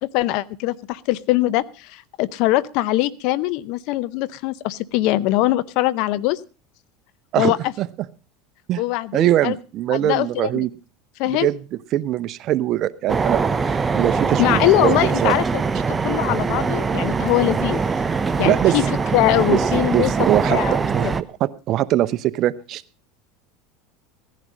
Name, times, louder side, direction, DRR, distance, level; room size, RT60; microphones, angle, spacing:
voice 1, 0.0-6.4 7.4-7.6 8.8-9.6 9.9-10.6 11.2-11.5 14.4-15.6 16.0-17.8 18.4-18.8 19.1-20.1 20.5-20.8 21.0-21.2, left 17 dB, 65° left, 19 dB, 0.7 m, -22 dB
voice 2, 7.3-7.9 8.7-8.8 9.1-10.7 11.3-11.6 11.9-15.3 18.4-18.8 19.5-19.6 19.9-20.6 20.9-21.1 21.4-22.8, right 13 dB, 50° right, 14 dB, 0.8 m, -22 dB
sound 1, 13.1-21.2, right 5 dB, 20° right, 0.8 m, -22 dB
16.0 x 11.0 x 5.1 m, 0.35 s
supercardioid pair, 100°, 0 cm